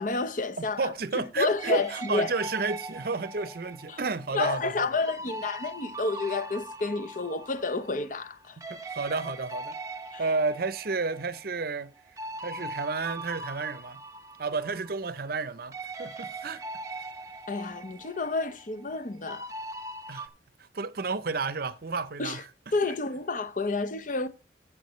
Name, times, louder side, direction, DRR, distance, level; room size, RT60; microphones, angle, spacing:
voice 1, 0.0-2.3 3.9-4.0 4.3-8.6 10.1-10.2 17.5-19.5 22.2-22.4 22.7-24.3, left 3 dB, 45° left, 0.8 m, -30 dB
voice 2, 0.6-5.0 8.7-9.8 10.2-11.9 12.4-14.0 14.4-16.6 20.1-20.3 20.6-22.4, right 4 dB, 55° right, 0.7 m, -31 dB
sound 1, 1.6-8.4 8.6-15.5 15.7-20.3, right 2 dB, 15° right, 0.9 m, -41 dB
15.0 x 7.3 x 3.2 m
head